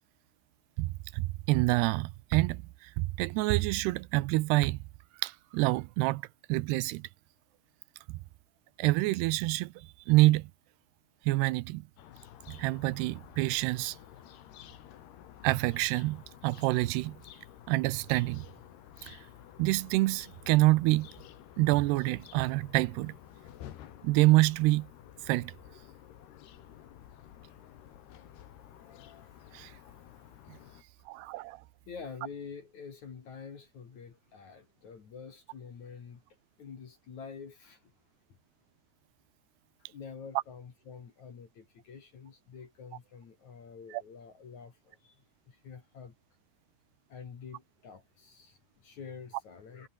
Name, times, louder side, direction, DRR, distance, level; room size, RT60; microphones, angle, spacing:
voice 1, 0.8-4.8 5.2-6.2 6.5-7.1 8.1-8.2 8.8-10.5 11.3-11.8 12.5-14.0 15.4-17.2 17.7-18.5 19.1-19.2 19.6-21.1 21.6-23.1 24.0-24.9 25.2-25.5 29.5-29.7 30.5-30.6 31.1-31.6 43.9-44.0, right 20 dB, 80° right, 2.6 m, -27 dB
sound 1, 12.0-30.8, left 11 dB, 70° left, 3.8 m, -52 dB
voice 2, 31.9-36.2 36.6-37.9 39.8-46.1 47.1-49.9, left 6 dB, 45° left, 3.6 m, -47 dB
omnidirectional pair, 5.1 m